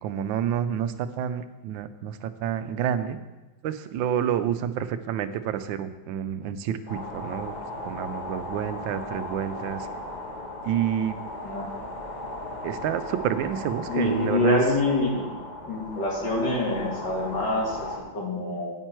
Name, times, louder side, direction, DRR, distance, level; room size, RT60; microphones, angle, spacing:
voice 1, 0.0-3.2 3.6-7.5 7.8-9.9 10.6-11.2 12.6-14.6, right 9 dB, 90° right, 12 dB, 1.4 m, -29 dB
sound 1, 6.9-18.0, left 1 dB, 25° left, 1.2 m, -36 dB
voice 2, 13.9-15.3 15.7-18.7, left 2 dB, 65° left, -3 dB, 2.9 m, -26 dB
9.1 x 8.9 x 4.5 m, 1.1 s
omnidirectional pair, 2.0 m